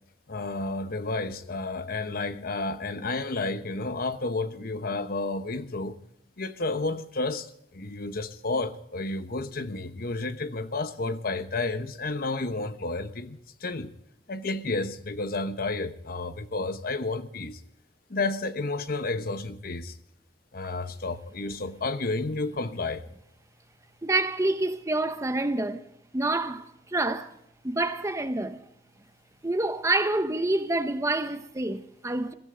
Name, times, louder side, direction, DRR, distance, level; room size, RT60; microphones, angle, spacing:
voice 1, 0.3-6.0 6.4-13.9 14.3-17.6 18.1-20.0 20.5-23.0, left 3 dB, 55° left, 1.1 m, -31 dB
voice 2, 24.0-27.3 27.6-28.6 29.4-32.3, right 2 dB, 15° right, 0.8 m, -27 dB
23.0 x 13.5 x 3.8 m
head